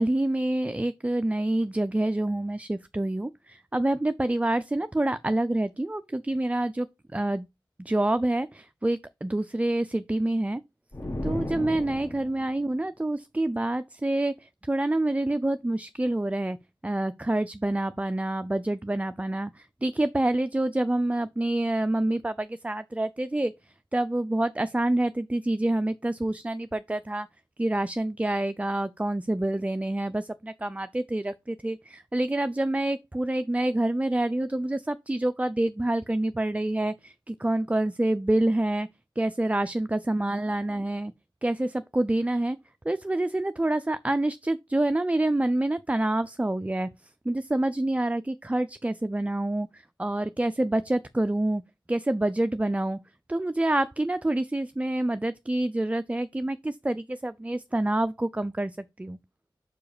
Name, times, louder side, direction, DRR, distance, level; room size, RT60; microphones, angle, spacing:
voice 1, 0.0-6.9 7.1-7.5 7.8-10.6 11.2-16.6 16.8-23.5 23.9-27.3 27.6-38.9 39.2-41.1 41.4-42.6 42.8-46.9 47.3-51.6 51.9-53.0 53.3-58.7 59.0-59.2, right 1 dB, 15° right, 0.4 m, -27 dB
sound 1, 10.9-12.5, left 1 dB, 35° left, 1.3 m, -34 dB
5.0 x 4.8 x 4.8 m
wide cardioid pair, 55°, 9 cm